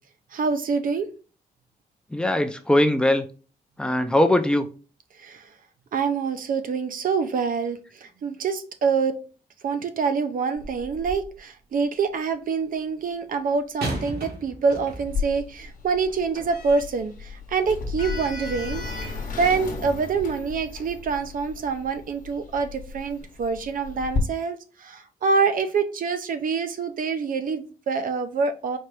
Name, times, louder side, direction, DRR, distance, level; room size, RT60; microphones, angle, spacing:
voice 1, 0.3-1.1 5.2-5.4 5.9-9.2 9.6-28.8, right 5 dB, 60° right, 9 dB, 0.6 m, -26 dB
voice 2, 2.1-3.3 3.8-4.7, left 1 dB, 5° left, 7 dB, 0.5 m, -20 dB
sound 1, 10.6-11.4 13.8-15.3 16.1-16.3, right 1 dB, 80° right, 1.8 m, -34 dB
Sliding door, 15.1-24.2, left 4 dB, 55° left, 1.0 m, -34 dB
4.4 x 2.5 x 3.2 m, 0.35 s
cardioid pair, 100°, 16 cm